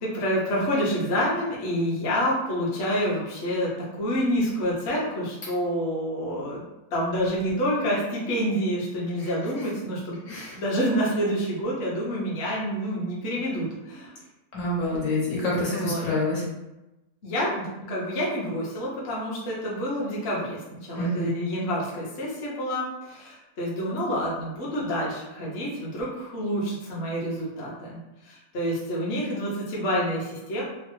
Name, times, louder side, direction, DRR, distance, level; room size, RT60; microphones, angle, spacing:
voice 1, 0.0-3.7 4.0-6.6 6.9-10.2 10.5-14.1 15.7-16.0 17.2-30.6, equal, 55° left, -5 dB, 0.9 m, -28 dB
voice 2, 14.5-16.4 21.0-21.3, left 1 dB, 70° left, -6 dB, 1.4 m, -27 dB
3.1 x 2.0 x 3.0 m, 0.98 s
omnidirectional pair, 1.6 m